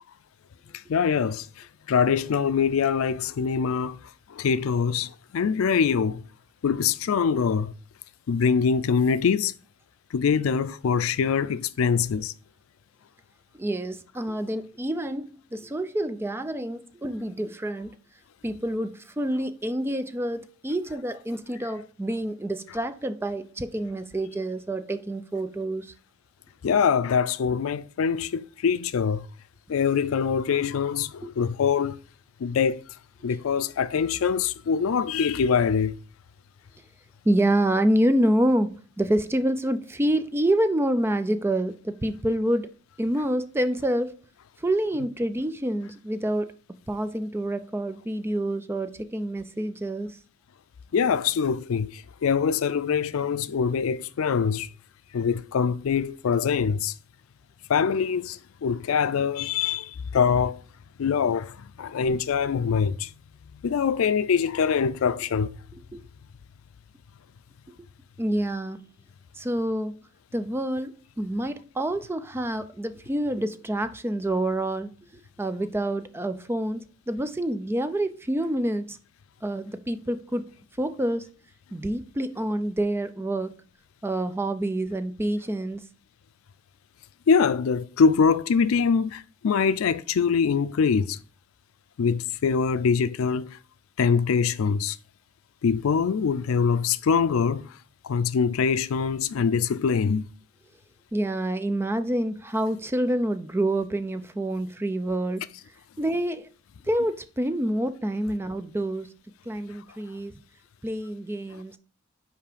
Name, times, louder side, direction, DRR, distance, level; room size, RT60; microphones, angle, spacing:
voice 1, 0.7-4.0 4.3-6.2 6.6-7.7 8.3-9.5 10.1-12.3 26.6-29.3 29.7-32.0 32.4-32.8 33.2-36.0 50.9-54.7 55.1-56.9 57.7-60.6 61.0-63.1 63.5-65.6 87.3-91.2 92.0-93.6 94.0-95.0 95.6-97.8 98.0-100.3, left 6 dB, 90° left, 0.4 m, -24 dB
voice 2, 13.6-17.9 18.4-25.9 31.2-31.3 37.2-42.7 43.0-44.1 44.6-46.5 46.9-50.2 65.9-66.0 68.2-68.8 69.3-70.0 70.3-79.0 79.4-80.4 80.8-81.3 81.7-83.5 84.0-85.8 101.1-105.4 106.0-106.5 106.9-109.1 109.5-110.3 110.8-111.8, right 1 dB, 10° right, 0.4 m, -27 dB
5.7 x 4.7 x 5.0 m
head